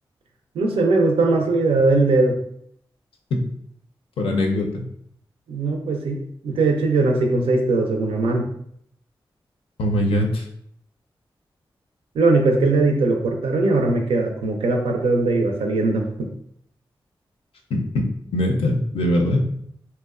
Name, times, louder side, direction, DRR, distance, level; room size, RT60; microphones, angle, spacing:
voice 1, 0.5-2.4 5.5-8.5 12.1-16.3, right 3 dB, 85° right, 3 dB, 0.4 m, -20 dB
voice 2, 4.2-4.8 9.8-10.4 17.7-17.8 18.3-19.4, left 1 dB, 80° left, 2 dB, 0.5 m, -21 dB
2.7 x 2.1 x 2.3 m, 0.69 s
cardioid pair, 40°, 9 cm